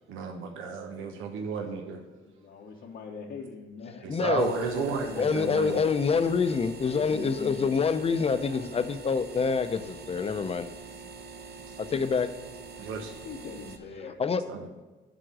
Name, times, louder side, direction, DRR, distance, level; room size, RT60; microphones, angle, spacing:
voice 1, 0.1-2.0 4.0-5.8 12.8-13.1 14.5-14.7, right 5 dB, 85° right, 3 dB, 1.1 m, -33 dB
voice 2, 2.3-4.1 4.5-4.6 6.9-7.9 11.9-12.0 13.2-14.4, left 5 dB, 70° left, -3 dB, 1.1 m, -41 dB
voice 3, 4.1-4.8 5.1-10.7 11.8-12.3 14.2-14.4, left 5 dB, 30° left, 10 dB, 0.7 m, -26 dB
sound 1, 4.4-13.8, right 4 dB, 55° right, 1.0 m, -45 dB
11.0 x 3.8 x 6.1 m, 1.2 s
cardioid pair, 90°, 20 cm